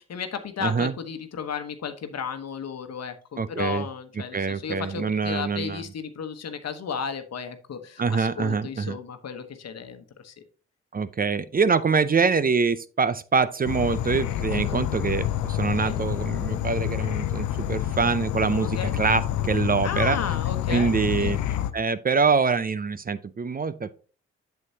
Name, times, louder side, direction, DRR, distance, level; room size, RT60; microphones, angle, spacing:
voice 1, 0.0-10.3 14.5-14.8 15.8-16.0 18.6-19.0 19.8-21.3, left 7 dB, 60° left, 8 dB, 1.1 m, -34 dB
voice 2, 0.6-0.9 3.4-3.9 4.3-5.8 8.0-9.0 10.9-20.2 20.7-21.4 21.7-23.9, right 5 dB, 30° right, 15 dB, 0.5 m, -25 dB
Insect / Frog, 13.6-21.7, left 12 dB, 80° left, 0.5 m, -28 dB
8.0 x 7.0 x 2.8 m, 0.37 s
supercardioid pair, 45°, 29 cm